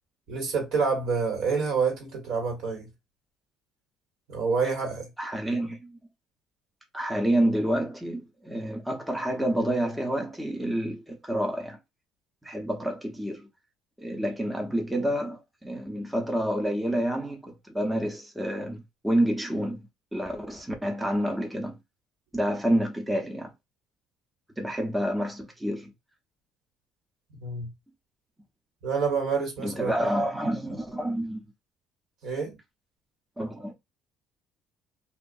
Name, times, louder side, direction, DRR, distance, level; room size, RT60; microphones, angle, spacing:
voice 1, 0.3-2.9 4.3-5.1 27.4-27.7 28.8-29.9 32.2-32.5, right 5 dB, 70° right, 1.3 m, -27 dB
voice 2, 5.2-6.0 6.9-11.8 12.4-13.5 14.0-19.8 20.1-21.8 22.3-23.5 24.6-25.9 29.6-31.5 33.4-33.7, right 1 dB, 5° right, 0.6 m, -28 dB
2.5 x 2.3 x 2.5 m
cardioid pair, 100°, 0 cm